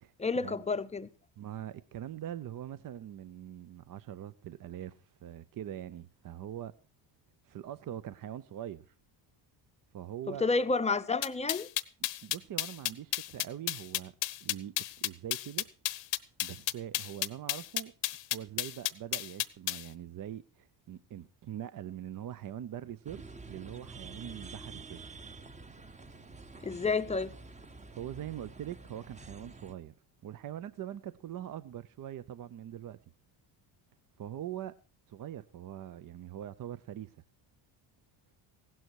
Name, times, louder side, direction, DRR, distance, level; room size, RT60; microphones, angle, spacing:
voice 1, 0.2-1.1 10.3-11.7 26.6-27.3, left 4 dB, 15° left, 0.6 m, -30 dB
voice 2, 1.4-6.7 7.4-8.9 9.9-10.4 12.2-14.1 14.4-15.7 16.4-17.9 18.3-25.2 28.0-29.9 30.2-33.0 34.2-34.7 35.1-37.2, right 11 dB, 45° right, 0.6 m, -43 dB
sound 1, 11.2-19.8, left 16 dB, 70° left, 0.9 m, -32 dB
sound 2, 23.0-29.7, right 3 dB, 15° right, 0.9 m, -48 dB
16.0 x 12.0 x 4.6 m
cardioid pair, 120°, 46 cm